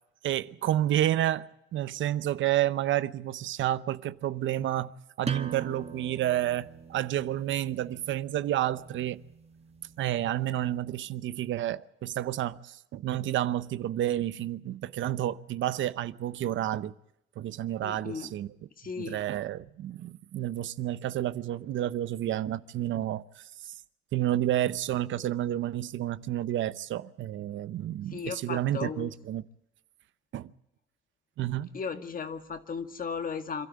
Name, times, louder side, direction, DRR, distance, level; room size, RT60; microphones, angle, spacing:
voice 1, 0.2-9.2 10.0-16.9 17.4-18.5 19.0-23.8 24.1-29.4 30.3-30.5 31.4-31.7, right 12 dB, 75° right, 0.8 m, -30 dB
sound 1, 5.2-10.6, right 5 dB, 30° right, 1.7 m, -42 dB
voice 2, 17.8-18.3 18.8-19.2 28.1-29.1 31.7-33.7, left 5 dB, 45° left, 2.0 m, -36 dB
26.5 x 12.5 x 9.6 m
cardioid pair, 90°, 20 cm